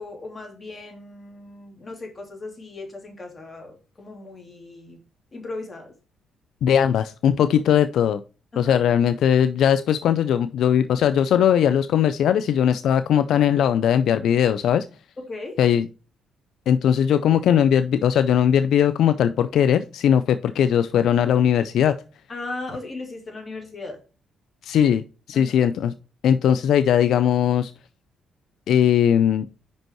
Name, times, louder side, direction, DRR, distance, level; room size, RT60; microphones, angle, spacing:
voice 1, 0.0-5.0 5.3-5.9 8.5-8.8 15.2-15.6 22.3-24.0 25.3-25.6, left 2 dB, 30° left, 2 dB, 2.8 m, -37 dB
voice 2, 6.6-8.2 8.6-14.8 15.6-15.9 16.7-22.0 24.6-25.9 26.2-27.7 28.7-29.5, left 9 dB, 75° left, 12 dB, 0.4 m, -19 dB
5.4 x 5.3 x 4.5 m, 0.33 s
cardioid pair, 90°, 0 cm